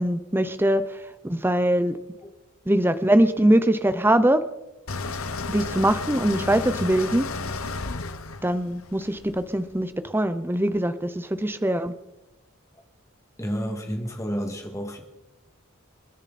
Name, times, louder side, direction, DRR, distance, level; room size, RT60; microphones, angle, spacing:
voice 1, 0.0-2.0 2.7-4.4 5.5-7.3 8.4-11.9, right 1 dB, 10° right, 0.7 m, -22 dB
sound 1, 4.9-9.8, left 3 dB, 85° left, 1.2 m, -33 dB
voice 2, 13.4-15.0, equal, 15° left, 2.2 m, -30 dB
29.0 x 10.5 x 4.2 m
head